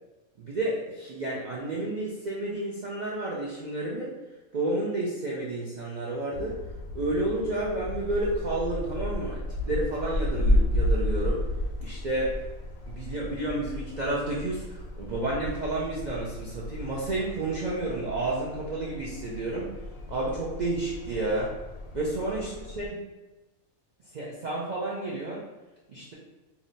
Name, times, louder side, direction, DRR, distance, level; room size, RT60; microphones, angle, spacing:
voice 1, 0.4-4.1 4.5-6.6 6.9-11.4 11.8-12.4 12.9-19.7 20.1-21.5 21.9-23.0 24.0-25.4 25.9-26.1, right 2 dB, 75° right, -5 dB, 0.4 m, -31 dB
sound 1, 6.3-22.9, left 1 dB, 75° left, 0.9 m, -32 dB
2.7 x 2.1 x 3.9 m, 1.1 s
omnidirectional pair, 1.4 m